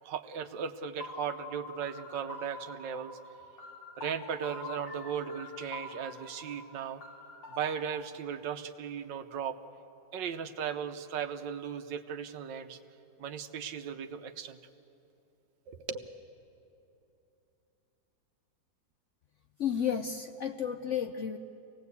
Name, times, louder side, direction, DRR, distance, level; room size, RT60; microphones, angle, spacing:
voice 1, 0.0-3.2 4.0-7.0 7.5-9.6 10.1-12.8 13.2-14.6 15.7-16.1, right 7 dB, 80° right, 9 dB, 1.6 m, -37 dB
sound 1, 1.0-7.9, left 3 dB, 85° left, 3.3 m, -46 dB
voice 2, 19.6-21.4, left 8 dB, 65° left, 7 dB, 0.7 m, -32 dB
26.0 x 18.5 x 8.3 m, 2.9 s
omnidirectional pair, 1.9 m